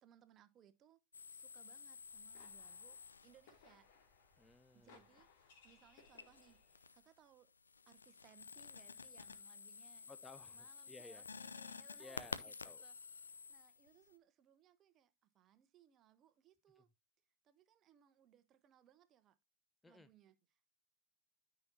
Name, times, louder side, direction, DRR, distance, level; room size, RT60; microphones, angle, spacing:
voice 1, 0.0-1.0 1.3-3.0 3.2-3.9 4.7-7.5 7.9-10.1 10.5-16.9 17.4-19.4 19.9-20.7, right 10 dB, 30° right, 0.9 m, -68 dB
sound 1, 1.1-3.6 6.0-7.1 7.5-14.1, left 5 dB, 75° left, 0.6 m, -52 dB
sound 2, 1.9-7.0, left 5 dB, 50° left, 2.7 m, -67 dB
voice 2, 4.4-5.0 10.1-11.3 12.0-12.8 19.8-20.1, left 2 dB, 10° left, 0.6 m, -58 dB
12.5 x 5.9 x 2.7 m
figure-of-eight pair, 90°, 0 cm